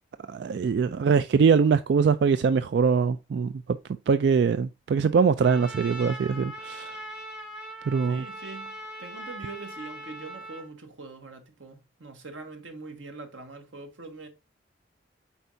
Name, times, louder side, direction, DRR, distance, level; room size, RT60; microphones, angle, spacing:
voice 1, 0.3-3.6 4.1-7.0 7.9-8.2, right 5 dB, 60° right, 0.3 m, -23 dB
Trumpet, 5.4-10.7, right 1 dB, 5° right, 1.5 m, -40 dB
voice 2, 8.1-14.3, right 3 dB, 90° right, 1.4 m, -43 dB
8.0 x 4.3 x 2.7 m
head